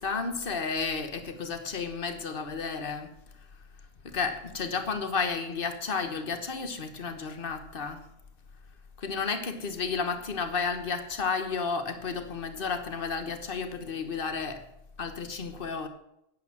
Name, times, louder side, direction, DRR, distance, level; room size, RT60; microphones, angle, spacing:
voice 1, 0.0-3.1 4.0-8.0 9.0-14.7 15.0-15.9, left 5 dB, 45° left, 8 dB, 1.4 m, -32 dB
11.0 x 8.5 x 7.4 m, 0.81 s
omnidirectional pair, 1.3 m